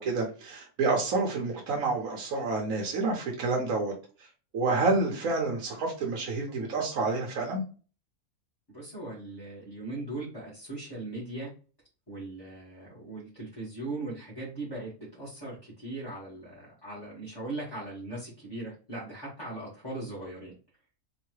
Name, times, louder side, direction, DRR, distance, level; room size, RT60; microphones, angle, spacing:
voice 1, 0.0-3.9 4.5-7.6, right 3 dB, 75° right, 0 dB, 1.3 m, -28 dB
voice 2, 8.7-11.5 12.1-20.5, right 2 dB, 15° left, -7 dB, 1.5 m, -39 dB
3.8 x 2.7 x 3.1 m, 0.36 s
omnidirectional pair, 1.5 m